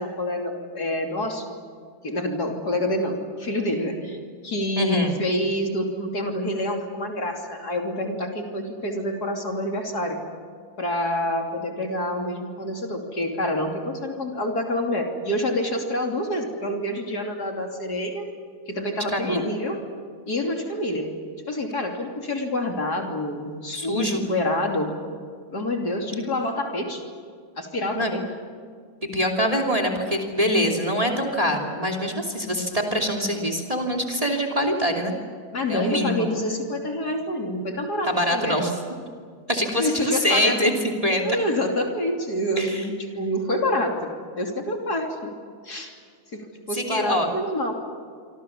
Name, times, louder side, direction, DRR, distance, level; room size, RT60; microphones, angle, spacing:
voice 1, 0.0-1.6 2.0-4.2 4.4-10.2 10.8-18.3 18.7-19.8 20.3-21.1 21.5-24.9 25.5-27.0 27.6-28.2 35.5-38.7 39.7-40.6 41.2-44.1 44.4-45.3 45.6-45.9 46.3-47.8, left 1 dB, 50° left, 2 dB, 3.4 m, -27 dB
voice 2, 4.8-5.2 19.1-19.5 23.7-24.2 27.9-28.1 29.1-35.1 35.7-36.3 38.0-38.7 39.5-41.2 42.6-42.8 46.7-47.3, equal, 15° right, 4 dB, 2.9 m, -24 dB
27.5 x 25.0 x 7.2 m, 2.1 s
omnidirectional pair, 2.3 m